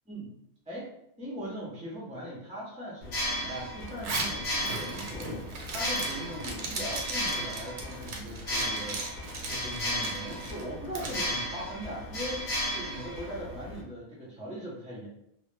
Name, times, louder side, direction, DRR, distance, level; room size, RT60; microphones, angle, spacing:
voice 1, 1.2-15.1, equal, 10° right, -5 dB, 0.4 m, -40 dB
sound 1, 3.0-13.8, equal, 50° left, 0.7 m, -35 dB
Zipper (clothing), 3.9-11.2, right 3 dB, 80° right, 0.9 m, -38 dB
2.1 x 2.0 x 3.0 m, 0.74 s
omnidirectional pair, 1.2 m